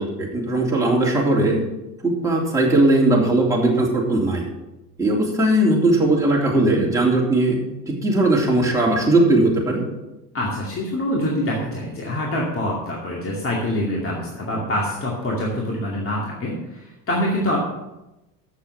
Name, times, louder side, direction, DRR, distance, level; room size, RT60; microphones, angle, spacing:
voice 1, 0.0-1.6 2.0-4.4 5.0-7.6 7.9-9.8, right 2 dB, 5° right, -3 dB, 3.2 m, -19 dB
voice 2, 10.3-17.6, left 1 dB, 25° left, -3 dB, 2.4 m, -25 dB
7.6 x 6.7 x 7.1 m, 0.96 s
hypercardioid pair, 85°, 48 cm